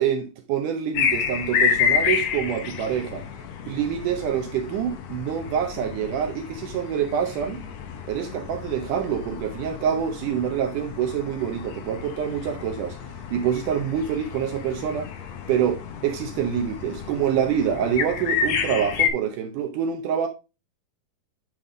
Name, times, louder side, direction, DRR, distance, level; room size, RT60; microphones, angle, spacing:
voice 1, 0.0-3.3 3.7-7.6 8.1-13.0 13.3-15.1 15.5-20.3, right 8 dB, 75° right, 2.1 m, -26 dB
sound 1, 0.9-19.1, left 7 dB, 90° left, 1.4 m, -30 dB
9.2 x 3.9 x 3.8 m
omnidirectional pair, 4.2 m